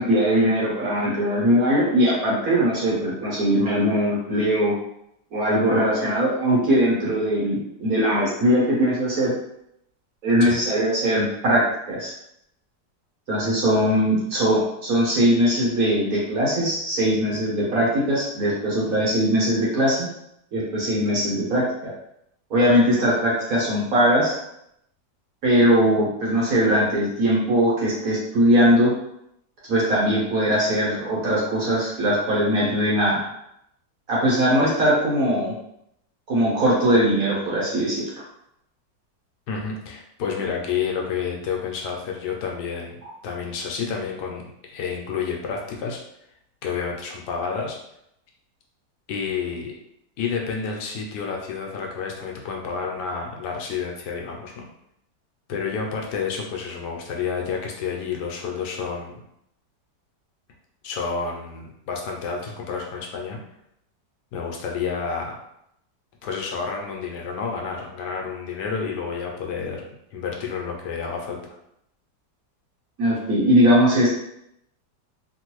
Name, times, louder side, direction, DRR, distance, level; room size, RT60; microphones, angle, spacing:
voice 1, 0.0-4.7 5.3-9.3 10.2-12.1 13.3-20.1 20.5-21.9 22.5-24.4 25.4-28.9 29.7-33.2 34.1-35.5 36.3-38.0 73.0-74.1, equal, 55° right, -6 dB, 1.4 m, -20 dB
voice 2, 39.5-46.0 46.6-47.8 49.1-49.7 50.2-54.6 55.5-59.2 60.8-63.4 64.3-65.4 66.2-69.8 70.1-71.6, left 5 dB, 75° left, 0 dB, 1.1 m, -30 dB
3.0 x 2.5 x 3.0 m, 0.78 s
omnidirectional pair, 1.9 m